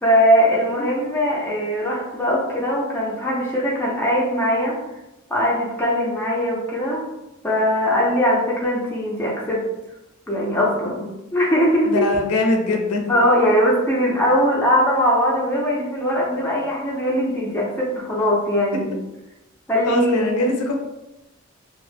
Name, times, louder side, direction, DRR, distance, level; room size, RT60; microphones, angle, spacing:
voice 1, 0.0-4.8 5.3-7.0 7.4-9.7 10.3-12.1 13.1-18.9 19.7-20.4, equal, 10° left, -5 dB, 0.4 m, -20 dB
voice 2, 11.9-13.5 19.9-20.7, left 2 dB, 90° left, 2 dB, 0.4 m, -22 dB
2.0 x 2.0 x 3.2 m, 0.96 s
head